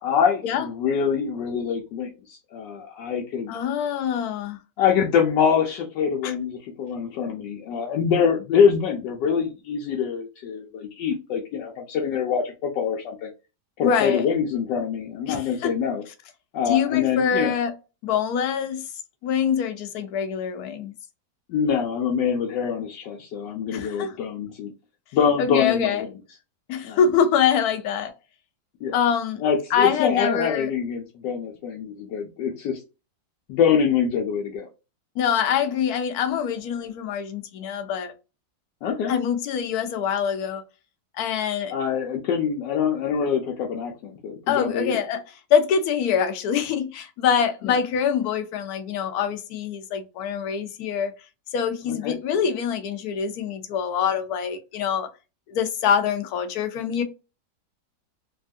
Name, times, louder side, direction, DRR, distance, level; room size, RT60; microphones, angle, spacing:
voice 1, 0.0-3.5 4.8-13.3 13.8-16.0 16.5-17.5 21.5-24.7 25.1-26.1 26.8-27.0 28.8-29.0 29.4-32.8 33.5-34.7 38.8-39.1 41.7-45.0 47.6-47.8 51.9-52.1, left 7 dB, 85° left, 1.3 m, -24 dB
voice 2, 3.5-4.6 6.2-6.3 13.8-14.3 15.3-15.7 16.7-17.7 18.0-18.8 19.2-20.9 23.7-24.2 25.4-26.0 26.7-28.1 28.9-29.4 29.7-30.7 35.2-38.1 39.1-40.6 41.2-41.7 44.5-45.2 45.5-51.1 51.5-55.1 55.5-57.0, left 7 dB, 70° left, 1.0 m, -24 dB
3.4 x 2.3 x 2.5 m
omnidirectional pair, 1.9 m